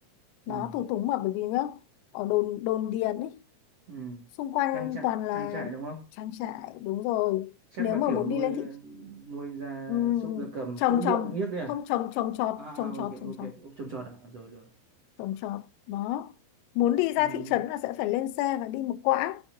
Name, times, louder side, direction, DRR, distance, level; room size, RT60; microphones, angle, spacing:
voice 1, 0.5-1.8 2.1-3.4 4.4-5.7 6.2-7.5 7.8-8.7 9.9-10.5 10.8-11.3 11.7-13.5 15.2-16.3 16.8-19.4, left 14 dB, 90° left, 3.5 m, -29 dB
voice 2, 3.9-4.3 4.7-6.0 7.7-11.8 12.6-14.7 17.2-17.5, right 3 dB, 55° right, 1.8 m, -37 dB
16.0 x 8.6 x 2.6 m
omnidirectional pair, 5.9 m